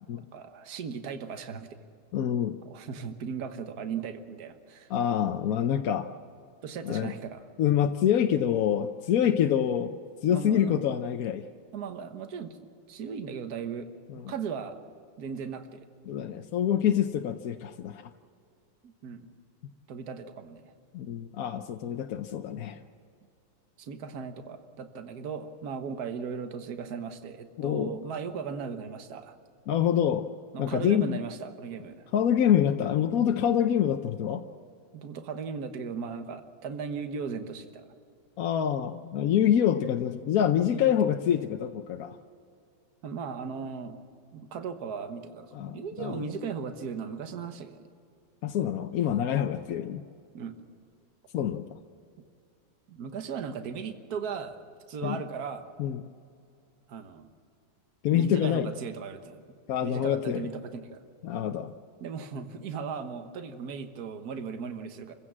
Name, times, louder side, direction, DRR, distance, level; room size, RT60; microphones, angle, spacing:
voice 1, 0.3-1.7 2.6-4.9 6.6-7.4 10.3-10.9 11.7-12.6 12.9-13.9 14.3-14.8 15.2-15.8 18.8-19.3 19.9-20.6 23.8-29.3 30.5-32.1 34.9-37.8 40.7-41.1 43.0-44.0 44.3-47.9 49.3-49.5 50.3-50.6 52.9-54.6 54.9-55.7 56.9-57.3 58.1-59.4 59.8-61.0 62.0-65.1, right 6 dB, 60° right, 8 dB, 1.7 m, -37 dB
voice 2, 2.1-2.6 4.9-6.1 6.8-7.1 7.6-10.0 10.2-11.4 14.1-14.3 16.1-18.0 20.9-22.8 27.6-28.0 29.7-30.3 30.6-31.2 32.1-34.4 38.4-42.2 45.5-46.2 48.4-50.0 51.3-51.7 55.0-55.2 55.8-56.0 58.0-58.7 59.7-60.4 61.2-61.7, left 9 dB, 60° left, 6 dB, 1.0 m, -26 dB
27.5 x 16.0 x 7.4 m, 2.4 s
omnidirectional pair, 2.0 m